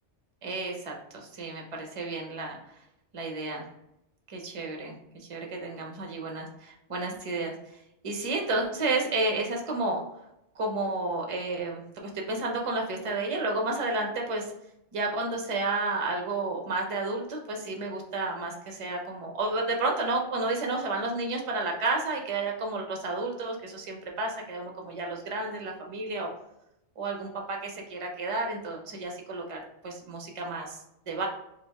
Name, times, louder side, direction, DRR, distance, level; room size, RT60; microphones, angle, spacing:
voice 1, 0.4-2.6 3.1-3.7 4.3-7.5 8.0-10.0 10.5-14.5 14.9-26.3 27.0-31.3, right 2 dB, 35° right, 1 dB, 0.6 m, -31 dB
4.4 x 2.3 x 3.4 m, 0.83 s
omnidirectional pair, 1.2 m